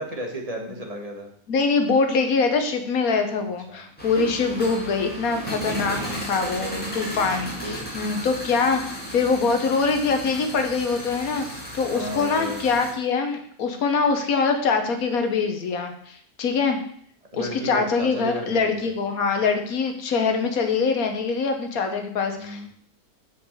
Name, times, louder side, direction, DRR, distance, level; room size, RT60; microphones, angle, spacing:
voice 1, 0.0-1.3 3.7-3.9 4.4-4.8 6.4-6.9 7.6-7.9 11.9-12.6 17.3-18.9 22.4-22.7, right 1 dB, 25° right, 1 dB, 1.3 m, -34 dB
voice 2, 1.5-16.8 17.3-22.7, left 4 dB, 70° left, 6 dB, 1.5 m, -24 dB
sound 1, 4.0-12.9, equal, 5° left, 1.9 m, -35 dB
6.0 x 4.9 x 6.5 m, 0.63 s
omnidirectional pair, 1.6 m